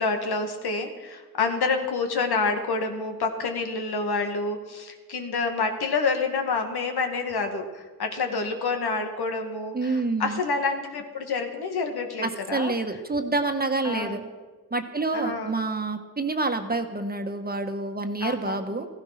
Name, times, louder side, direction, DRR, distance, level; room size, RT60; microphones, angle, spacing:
voice 1, 0.0-12.7 13.8-14.2 15.1-15.6 18.2-18.6, left 4 dB, 80° left, 4 dB, 2.1 m, -28 dB
voice 2, 9.7-10.4 12.2-14.2 14.7-18.9, right 3 dB, 25° right, 5 dB, 1.4 m, -28 dB
15.5 x 15.5 x 5.9 m, 1.4 s
wide cardioid pair, 95°, 38 cm